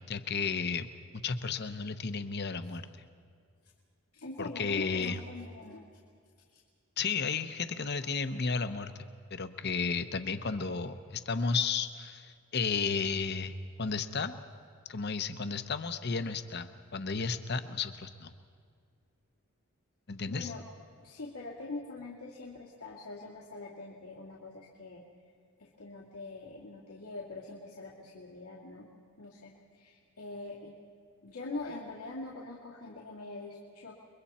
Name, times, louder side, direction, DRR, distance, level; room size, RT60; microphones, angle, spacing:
voice 1, 0.1-0.9 1.1-3.1 4.4-5.2 7.0-8.9 9.3-14.3 14.9-18.3 20.1-20.5, left 5 dB, 50° left, 10 dB, 0.9 m, -33 dB
voice 2, 4.1-5.8 20.3-20.6 21.0-25.0 25.6-28.9 29.2-30.8 31.2-33.9, left 3 dB, 85° left, -5 dB, 2.4 m, -43 dB
29.0 x 22.5 x 4.3 m, 2.2 s
head